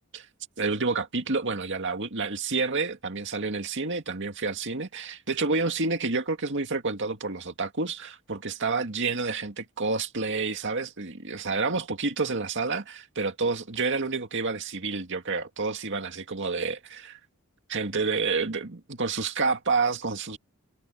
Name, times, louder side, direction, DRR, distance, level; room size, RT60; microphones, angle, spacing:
voice 1, 0.6-17.2 17.7-20.4, right 4 dB, 55° right, 2.1 m, -29 dB
head